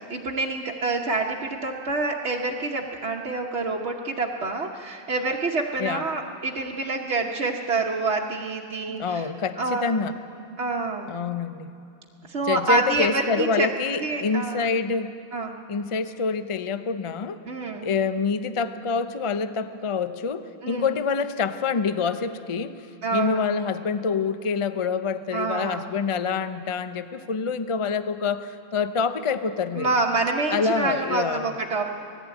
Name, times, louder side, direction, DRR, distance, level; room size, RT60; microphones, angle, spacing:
voice 1, 0.1-9.3 9.6-9.9 10.6-11.2 12.3-13.7 14.0-14.7 15.3-15.6 17.5-17.9 20.6-20.9 23.0-23.4 25.3-25.9 29.7-31.8, right 3 dB, 75° right, -1 dB, 1.3 m, -27 dB
voice 2, 8.9-10.1 11.1-11.7 12.5-15.1 15.7-17.4 17.8-22.8 23.1-29.9 30.5-31.5, left 5 dB, 35° left, 11 dB, 0.6 m, -26 dB
19.5 x 15.0 x 8.9 m, 2.7 s
omnidirectional pair, 1.1 m